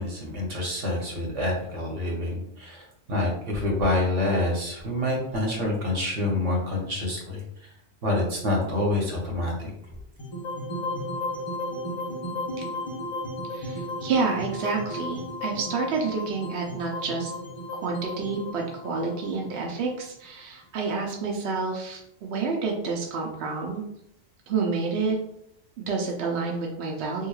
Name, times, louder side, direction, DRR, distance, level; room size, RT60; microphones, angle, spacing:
voice 1, 0.0-7.7 8.0-9.7, left 2 dB, 90° right, -1 dB, 1.3 m, -27 dB
sound 1, 10.2-20.4, left 1 dB, 30° left, 0.8 m, -34 dB
voice 2, 13.5-17.3 17.8-23.8 24.5-25.2 25.8-27.3, right 4 dB, 70° right, 0 dB, 0.8 m, -29 dB
3.5 x 3.0 x 2.3 m, 0.76 s
omnidirectional pair, 1.2 m